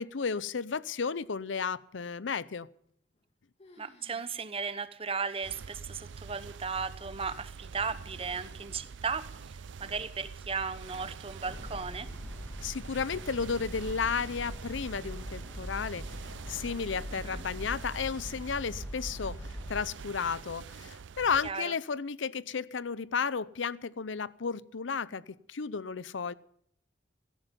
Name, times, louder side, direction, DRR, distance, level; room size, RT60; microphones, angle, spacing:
voice 1, 0.0-2.7 12.6-16.2 16.5-19.4 19.7-25.2 25.5-26.3, left 5 dB, 90° left, 19 dB, 0.7 m, -33 dB
sound 1, 2.8-3.3 3.6-4.3 4.6-4.8 5.4-5.5 6.3-6.6, left 1 dB, 35° left, 2.2 m, -59 dB
voice 2, 3.8-9.3 9.8-12.1 17.1-17.4 21.4-21.7, right 5 dB, 30° right, 13 dB, 0.9 m, -36 dB
sound 2, 5.4-21.5, right 5 dB, 75° right, 0.5 m, -45 dB
sound 3, 11.5-19.8, equal, 10° left, 1.9 m, -42 dB
16.5 x 13.5 x 5.3 m, 0.69 s
head